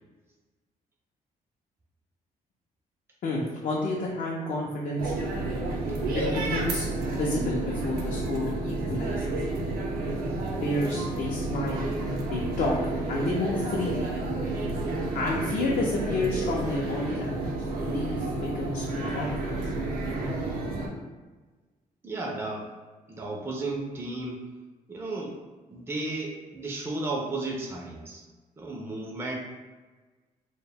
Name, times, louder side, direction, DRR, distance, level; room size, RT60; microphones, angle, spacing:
voice 1, 3.2-5.1 6.1-9.3 10.6-11.9 12.3-12.8 13.1-14.1 15.1-17.4 17.8-19.6, left 2 dB, 60° left, -3 dB, 0.5 m, -30 dB
sound 1, 5.0-20.9, right 2 dB, 75° right, 0.5 m, -30 dB
voice 2, 22.0-22.7 23.1-24.4 24.9-25.4 25.7-28.2 28.6-29.3, right 2 dB, 15° right, -1 dB, 0.4 m, -33 dB
2.1 x 2.0 x 3.4 m, 1.3 s
cardioid pair, 110°, 15 cm